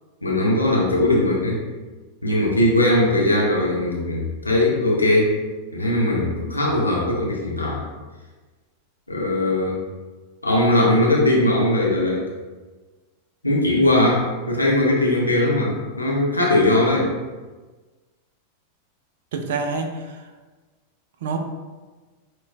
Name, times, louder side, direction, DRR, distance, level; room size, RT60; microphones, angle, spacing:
voice 1, 0.2-1.6 2.2-5.3 5.7-7.8 9.1-9.8 10.4-12.3 13.4-17.1, left 1 dB, 85° left, -3 dB, 0.8 m, -19 dB
voice 2, 19.3-20.2 21.2-21.4, right 4 dB, 55° right, 5 dB, 0.4 m, -27 dB
6.5 x 2.2 x 2.5 m, 1.3 s
figure-of-eight pair, 90°, 0 cm